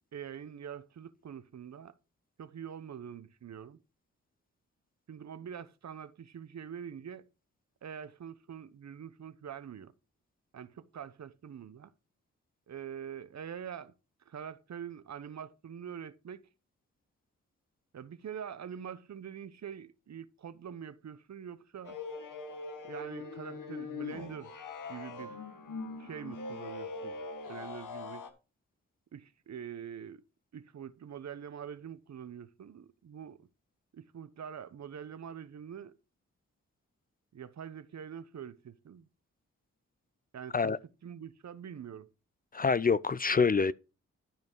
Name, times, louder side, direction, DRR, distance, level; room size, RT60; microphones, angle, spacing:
voice 1, 0.1-1.9 2.4-3.8 5.1-7.3 7.8-9.9 10.5-11.9 12.7-13.9 14.3-16.5 17.9-22.0 22.8-24.6 24.9-25.4 26.0-27.2 27.5-28.3 29.1-30.2 30.5-33.5 33.9-36.0 37.3-39.1 40.3-40.7 41.0-42.1, right 8 dB, 60° right, 0.9 m, -44 dB
sound 1, 21.8-28.3, left 4 dB, 80° left, 1.5 m, -42 dB
voice 2, 42.5-43.7, left 5 dB, 30° left, 0.4 m, -26 dB
12.0 x 5.2 x 4.6 m
supercardioid pair, 45°, 31 cm